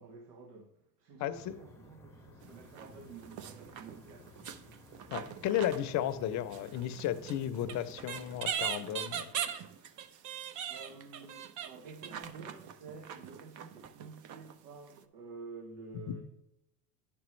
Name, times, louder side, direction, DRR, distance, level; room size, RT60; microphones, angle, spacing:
voice 1, 0.0-4.8 10.7-16.2, right 4 dB, 85° right, 1.1 m, -50 dB
voice 2, 1.2-1.5 5.1-9.3 16.1-16.2, left 11 dB, 40° left, 0.6 m, -34 dB
sound 1, 1.3-8.5, left 1 dB, 5° left, 0.7 m, -56 dB
sound 2, 2.4-2.9 3.2-6.2 6.5-14.6 15.0-15.1, right 8 dB, 40° right, 0.6 m, -41 dB
9.9 x 6.1 x 3.2 m
supercardioid pair, 110°, 46 cm